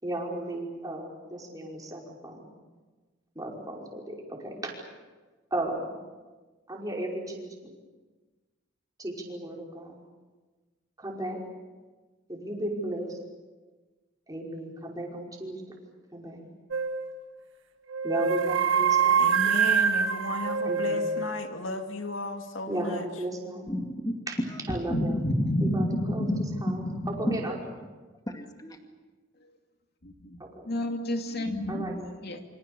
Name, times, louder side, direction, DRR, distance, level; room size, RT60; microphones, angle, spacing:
voice 1, 0.0-2.5 3.4-4.7 5.5-5.9 6.7-7.7 9.0-10.0 11.0-11.4 12.3-13.2 14.3-15.6 16.1-16.4 18.0-19.5 20.6-21.1 22.7-23.7 24.3-24.4 24.7-25.2 25.6-26.3 26.6-27.6 30.4-30.7 31.7-32.1, right 1 dB, 20° right, -1 dB, 5.3 m, -35 dB
sound 1, 16.7-17.1 17.9-21.4, right 6 dB, 75° right, 1.6 m, -25 dB
voice 2, 19.2-23.1, left 2 dB, 80° left, 5 dB, 2.5 m, -35 dB
voice 3, 23.7-24.1 24.9-27.1 28.3-28.8, equal, 20° left, 4 dB, 2.2 m, -33 dB
voice 4, 24.9-27.4 30.0-30.4 30.7-32.4, left 1 dB, 55° left, 5 dB, 2.6 m, -30 dB
28.0 x 25.5 x 6.9 m, 1.3 s
head